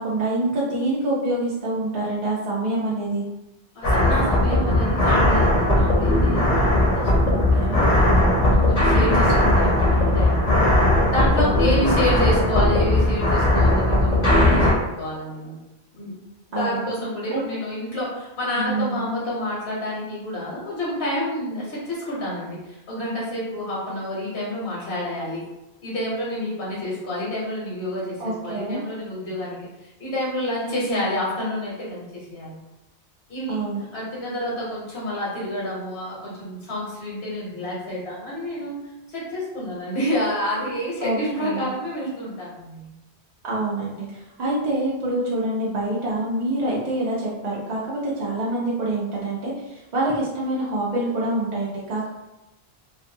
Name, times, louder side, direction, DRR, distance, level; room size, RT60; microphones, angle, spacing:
voice 1, 0.0-3.2 7.3-7.8 11.4-11.7 16.5-16.9 17.3-17.4 18.5-19.0 28.2-28.8 33.5-33.8 41.0-41.7 43.4-52.2, right 2 dB, 50° right, -6 dB, 0.6 m, -26 dB
voice 2, 3.7-8.0 8.4-10.7 11.1-15.6 15.9-16.1 16.5-25.5 25.8-32.6 33.3-33.6 33.9-38.8 39.1-42.9, left 1 dB, 70° left, -6 dB, 1.0 m, -29 dB
sound 1, 3.8-14.7, left 1 dB, 40° left, 0.7 m, -18 dB
2.5 x 2.1 x 2.7 m, 0.97 s
omnidirectional pair, 1.1 m